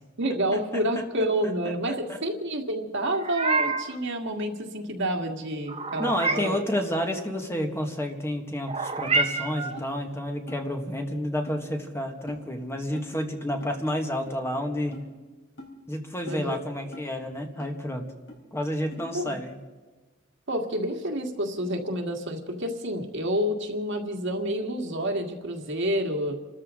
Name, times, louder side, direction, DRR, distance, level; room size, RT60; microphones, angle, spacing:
voice 1, 0.2-6.9 16.3-16.6 19.1-19.4 20.5-26.4, right 1 dB, 65° right, 2 dB, 2.0 m, -29 dB
voice 2, 1.9-2.2 6.0-15.0 15.9-18.0 18.5-19.6, equal, 15° left, 3 dB, 1.6 m, -30 dB
Meow, 3.0-4.0 5.7-6.6 8.7-9.8, right 3 dB, 30° right, 1.2 m, -28 dB
sound 1, 9.1-9.2 9.8-9.9 10.5-10.6 11.5-11.6 12.3-12.4 12.9-13.1 13.6-13.8 14.3-14.4 14.9-15.1 15.6-15.7 16.3-16.4 16.9-17.1 17.6-17.7 18.3-18.4 18.9-19.0, left 1 dB, 60° left, 4.5 m, -42 dB
28.5 x 13.5 x 3.8 m, 1.3 s
head